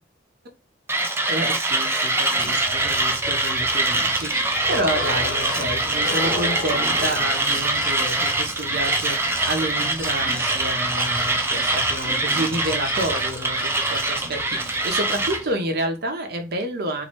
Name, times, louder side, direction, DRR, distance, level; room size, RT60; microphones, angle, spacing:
Mechanisms, 0.9-15.4, right 2 dB, 10° right, 0.4 m, -23 dB
voice 1, 1.3-17.1, right 1 dB, 50° right, 5 dB, 0.7 m, -29 dB
sound 1, 2.3-15.5, left 2 dB, 80° left, 1.2 m, -35 dB
3.1 x 2.6 x 2.9 m, 0.31 s
head